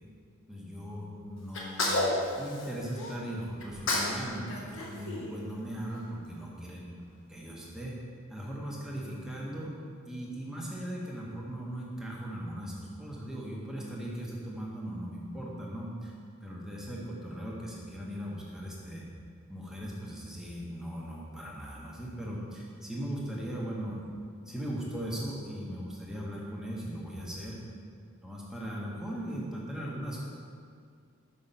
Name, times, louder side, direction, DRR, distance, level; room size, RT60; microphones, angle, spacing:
voice 1, 0.5-2.0 2.4-6.9 7.3-8.0 8.3-9.8 10.1-16.1 16.4-19.0 19.5-24.1 24.5-27.6 28.2-30.2, equal, 5° right, -5 dB, 1.1 m, -38 dB
Sneeze, 1.5-3.1 3.6-4.2 4.5-5.9, left 2 dB, 60° left, 1.1 m, -31 dB
5.7 x 5.6 x 5.3 m, 2.2 s
head